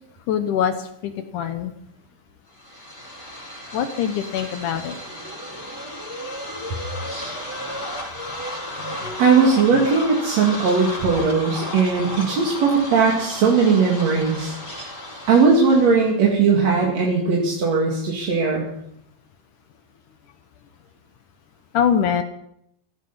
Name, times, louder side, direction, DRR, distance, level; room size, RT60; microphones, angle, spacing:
voice 1, 0.3-1.7 3.7-5.0 8.8-9.0 21.7-22.2, left 8 dB, 75° left, 8 dB, 1.9 m, -23 dB
sound 1, 2.5-16.1, left 1 dB, 15° left, 6.9 m, -34 dB
voice 2, 9.2-14.5 15.3-18.7, right 5 dB, 45° right, -2 dB, 3.0 m, -18 dB
16.5 x 15.0 x 5.6 m, 0.76 s
omnidirectional pair, 4.9 m